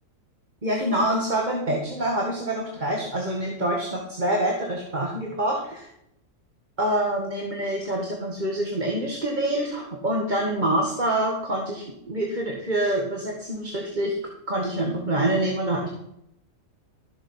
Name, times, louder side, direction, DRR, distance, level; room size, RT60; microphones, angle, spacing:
voice 1, 0.6-5.9 6.8-14.1 14.5-15.9, right 1 dB, 30° right, 0 dB, 1.8 m, -26 dB
14.0 x 7.5 x 5.7 m, 0.77 s
omnidirectional pair, 1.7 m